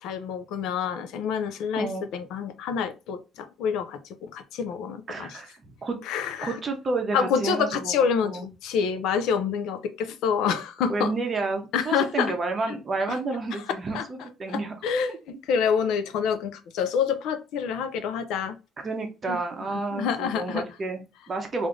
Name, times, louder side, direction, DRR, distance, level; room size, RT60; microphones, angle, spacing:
voice 1, 0.0-5.4 6.1-6.6 7.1-11.1 11.7-12.3 12.7-13.2 13.5-13.6 13.9-14.1 14.5-18.5 19.3-19.4 19.7-20.6, left 7 dB, 80° left, 0.5 m, -27 dB
voice 2, 1.7-2.1 5.1-6.0 6.4-8.4 10.9-14.7 15.1-15.2 18.8-21.7, right 3 dB, 25° right, 0.7 m, -30 dB
3.3 x 2.5 x 3.7 m
cardioid pair, 170°, 0 cm